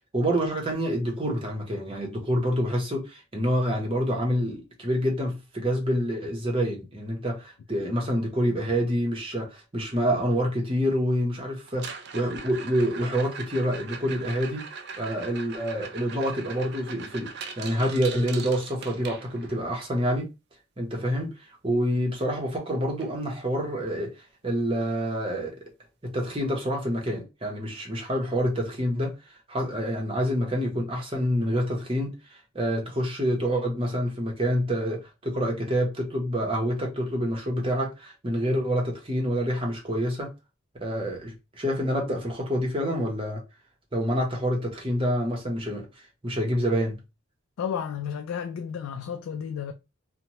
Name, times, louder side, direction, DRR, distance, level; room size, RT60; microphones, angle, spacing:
voice 1, 0.1-14.7 15.0-20.3 20.8-25.6 26.0-29.1 29.5-40.3 40.8-43.4 43.9-47.0, equal, 25° right, 0.8 m, -27 dB
sound 1, 11.7-19.7 21.9-22.0 22.3-22.6 23.0-23.1 23.7-23.8 25.7-25.8, right 5 dB, 50° right, 0.4 m, -40 dB
voice 2, 47.6-49.7, left 7 dB, 90° left, 0.3 m, -32 dB
2.8 x 2.1 x 2.8 m
head